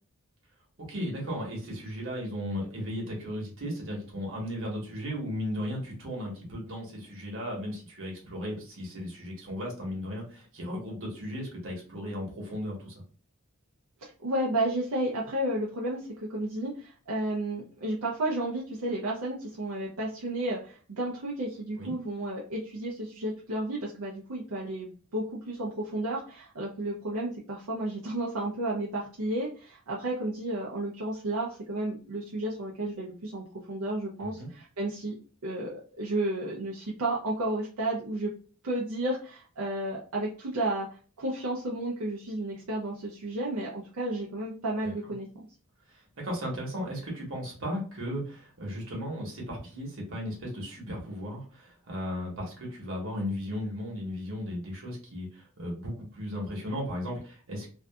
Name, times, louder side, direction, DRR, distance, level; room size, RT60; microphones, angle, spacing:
voice 1, 0.8-12.9 21.7-21.9 34.2-34.5 44.8-44.9 46.2-57.7, equal, 65° right, -2 dB, 1.1 m, -36 dB
voice 2, 14.0-38.3 38.6-45.3, right 1 dB, 85° right, -4 dB, 0.5 m, -32 dB
2.6 x 2.4 x 2.2 m, 0.40 s
head